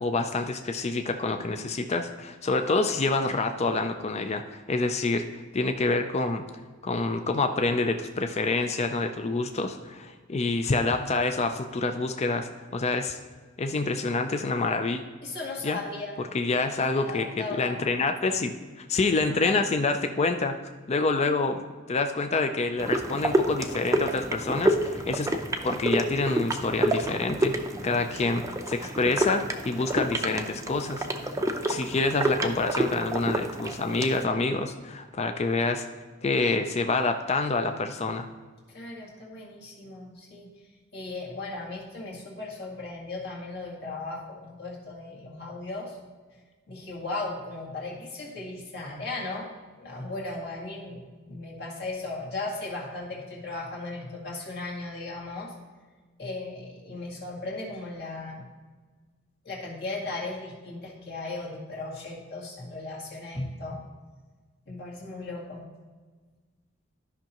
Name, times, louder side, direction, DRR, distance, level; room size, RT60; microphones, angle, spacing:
voice 1, 0.0-6.4 6.8-13.2 13.6-15.0 15.6-15.8 16.3-20.6 20.9-25.4 25.6-27.6 27.8-31.3 31.7-35.9 36.2-38.3, left 3 dB, 30° left, 7 dB, 0.4 m, -27 dB
voice 2, 15.2-16.2 16.9-17.9 19.4-19.6 38.7-40.5 40.9-46.0 46.7-49.5 49.8-51.0 51.3-55.5 56.2-58.5 59.4-63.8 64.7-65.6, left 2 dB, 55° left, -4 dB, 2.1 m, -36 dB
sound 1, 22.8-34.2, right 1 dB, 15° right, 0.5 m, -29 dB
13.0 x 5.6 x 3.0 m, 1.4 s
head